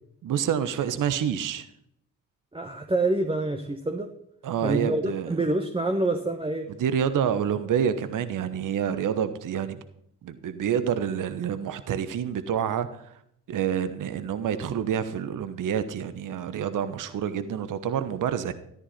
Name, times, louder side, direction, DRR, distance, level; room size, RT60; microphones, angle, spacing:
voice 1, 0.2-1.7 4.4-5.4 6.8-9.8 10.2-13.1 13.5-18.5, right 8 dB, 50° right, 12 dB, 1.1 m, -28 dB
voice 2, 2.5-4.1 4.6-6.7, right 2 dB, 15° right, 5 dB, 1.3 m, -27 dB
14.0 x 12.5 x 4.3 m, 0.72 s
figure-of-eight pair, 40°, 39 cm